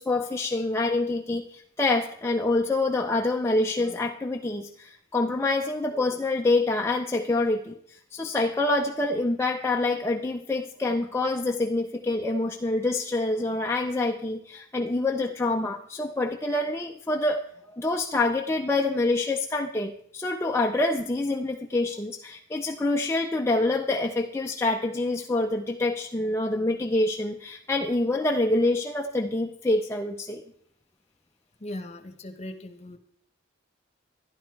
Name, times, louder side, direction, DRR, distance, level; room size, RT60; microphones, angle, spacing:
voice 1, 0.0-17.5 17.7-30.4, left 2 dB, 15° left, 1 dB, 0.5 m, -26 dB
voice 2, 31.6-33.0, left 1 dB, 30° left, 8 dB, 1.0 m, -38 dB
11.5 x 11.5 x 4.6 m, 0.66 s
head